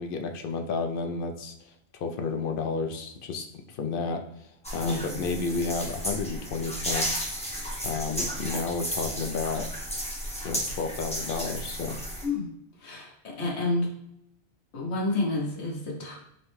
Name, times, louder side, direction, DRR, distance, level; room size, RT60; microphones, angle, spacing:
voice 1, 0.0-1.5 1.9-3.5 3.7-4.2 4.7-7.3 7.8-9.7 10.4-12.0, left 4 dB, 65° left, 5 dB, 0.7 m, -31 dB
sound 1, 4.6-12.2, equal, 5° left, 0.7 m, -33 dB
voice 2, 4.8-5.2 12.2-12.5 12.8-13.9 14.7-16.2, left 2 dB, 85° left, -2 dB, 1.3 m, -29 dB
5.5 x 2.1 x 3.1 m, 0.78 s
omnidirectional pair, 1.1 m